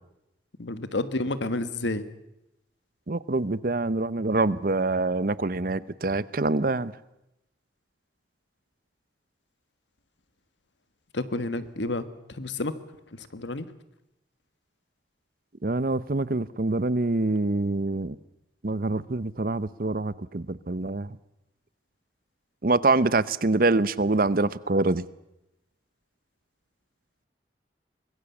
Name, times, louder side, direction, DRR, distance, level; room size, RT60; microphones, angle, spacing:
voice 1, 0.6-2.1 11.1-12.7 13.1-13.7, left 2 dB, 90° left, 12 dB, 1.6 m, -30 dB
voice 2, 3.1-6.9 15.6-18.1 18.6-21.2 22.6-25.0, right 2 dB, 50° right, 17 dB, 0.8 m, -25 dB
24.5 x 20.5 x 7.2 m, 0.88 s
head